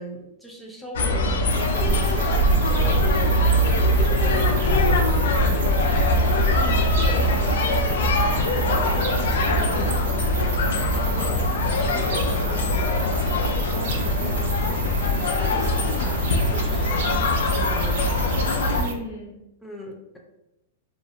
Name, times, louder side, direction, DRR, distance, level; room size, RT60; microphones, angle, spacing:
voice 1, 0.0-6.0 7.0-8.2 8.5-10.1 11.3-13.1 13.6-15.0 15.4-18.1 19.6-20.2, equal, ahead, -2 dB, 0.4 m, -39 dB
sound 1, 0.9-18.8, left 1 dB, 70° left, 0.3 m, -22 dB
sound 2, 1.5-18.9, right 6 dB, 65° right, 0.4 m, -33 dB
voice 2, 6.5-7.3 10.9-11.5 18.7-19.4, left 2 dB, 55° left, -2 dB, 0.8 m, -37 dB
2.4 x 2.1 x 2.7 m, 0.90 s
hypercardioid pair, 150°, 0 cm